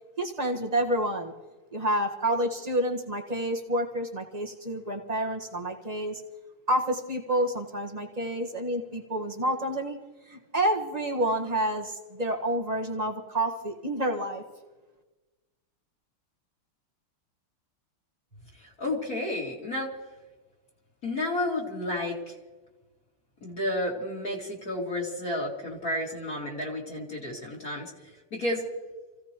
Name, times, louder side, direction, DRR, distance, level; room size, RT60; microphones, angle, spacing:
voice 1, 0.2-1.3 1.7-6.2 6.7-10.0 10.2-14.4, right 1 dB, 25° right, 1 dB, 1.1 m, -29 dB
voice 2, 18.6-19.9 21.0-22.3 23.4-28.7, left 1 dB, 40° left, -3 dB, 2.8 m, -31 dB
28.5 x 16.0 x 3.0 m, 1.2 s
omnidirectional pair, 2.4 m